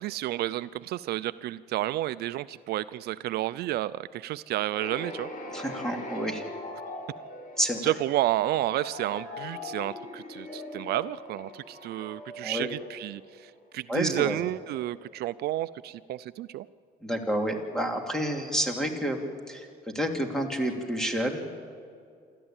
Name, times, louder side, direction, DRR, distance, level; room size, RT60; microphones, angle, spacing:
voice 1, 0.0-5.3 7.8-16.7, right 15 dB, 70° right, 15 dB, 0.5 m, -31 dB
sound 1, 4.7-13.5, left 2 dB, 55° left, 3.7 m, -41 dB
voice 2, 5.5-6.4 7.6-7.9 12.4-12.7 13.9-14.4 17.0-21.5, equal, 5° left, 3 dB, 2.9 m, -29 dB
27.5 x 13.5 x 8.9 m, 2.3 s
cardioid pair, 110°, 17 cm